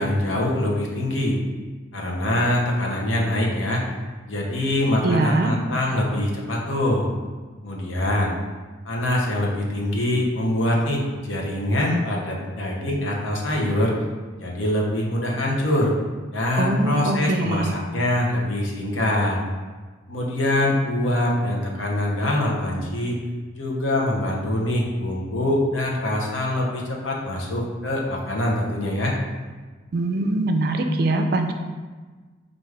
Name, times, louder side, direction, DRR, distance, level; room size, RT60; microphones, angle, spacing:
voice 1, 0.0-1.4 1.9-3.8 4.3-7.1 7.6-8.3 8.8-13.9 14.4-15.9 16.3-19.4 20.1-23.2 23.6-29.1, left 1 dB, 85° left, -2 dB, 0.8 m, -24 dB
voice 2, 5.0-5.5 16.6-17.7 29.9-31.5, right 2 dB, 55° right, 5 dB, 0.3 m, -22 dB
4.8 x 2.5 x 3.3 m, 1.4 s
head